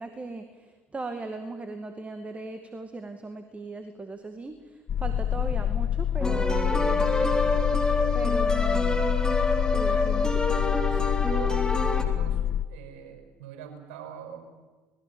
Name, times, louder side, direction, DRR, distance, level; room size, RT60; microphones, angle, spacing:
voice 1, 0.0-7.1 8.1-9.1 9.7-10.4, right 3 dB, 20° right, 7 dB, 2.2 m, -38 dB
sound 1, 4.9-12.6, left 10 dB, 40° left, 1.1 m, -26 dB
voice 2, 5.0-5.6 9.9-10.2 10.9-12.4 12.7-14.5, right 8 dB, 70° right, 6 dB, 5.3 m, -42 dB
sound 2, 6.2-12.0, left 2 dB, 10° left, 3.6 m, -27 dB
27.0 x 20.5 x 7.2 m, 1.3 s
hypercardioid pair, 65°, 6 cm